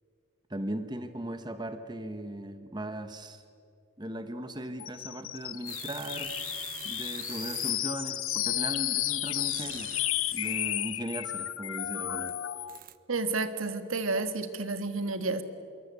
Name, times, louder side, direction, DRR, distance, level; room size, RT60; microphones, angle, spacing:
voice 1, 0.5-3.4 4.0-9.9 10.3-12.4, right 1 dB, 20° right, 9 dB, 1.1 m, -38 dB
sound 1, 4.8-12.8, left 14 dB, 85° left, 0.9 m, -33 dB
sound 2, 5.7-8.0 9.2-10.7 12.3-12.4 12.7-13.0, right 11 dB, 40° right, 0.9 m, -45 dB
voice 2, 13.1-15.4, right 3 dB, 85° right, 10 dB, 1.7 m, -30 dB
26.5 x 22.5 x 8.3 m, 2.6 s
head